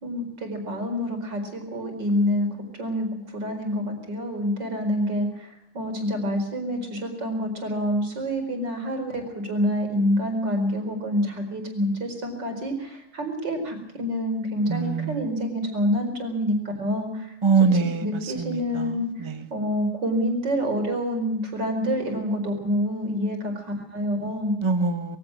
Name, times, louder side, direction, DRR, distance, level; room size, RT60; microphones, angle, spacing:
voice 1, 0.0-2.5 2.8-5.5 5.7-17.3 17.6-17.7 18.0-19.1 19.5-24.5, equal, 60° right, 4 dB, 5.3 m, -27 dB
voice 2, 14.7-15.3 17.4-19.5 24.6-25.2, right 5 dB, 20° right, 8 dB, 0.9 m, -24 dB
22.5 x 16.0 x 7.6 m, 0.81 s
omnidirectional pair, 2.2 m